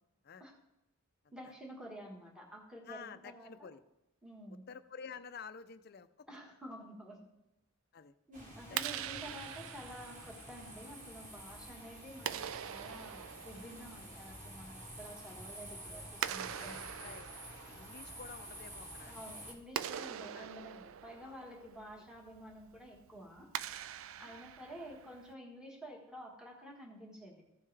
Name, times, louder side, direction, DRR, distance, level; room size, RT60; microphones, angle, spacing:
voice 1, 1.3-3.7 4.2-4.6 6.3-7.3 8.3-17.2 19.0-23.5 24.2-27.4, equal, 5° right, -2 dB, 1.4 m, -50 dB
voice 2, 2.8-3.8 4.7-6.3 7.9-8.2 8.7-9.6 13.9-14.0 16.6-17.3 17.7-19.1 20.3-20.5 21.2-21.4 22.0-22.1 24.2-24.5, left 6 dB, 45° left, 12 dB, 0.5 m, -51 dB
sound 1, 8.3-19.5, right 1 dB, 35° right, 1.8 m, -50 dB
Clapping, 8.6-25.3, right 10 dB, 70° right, 0.3 m, -45 dB
15.0 x 5.6 x 3.3 m, 0.93 s
head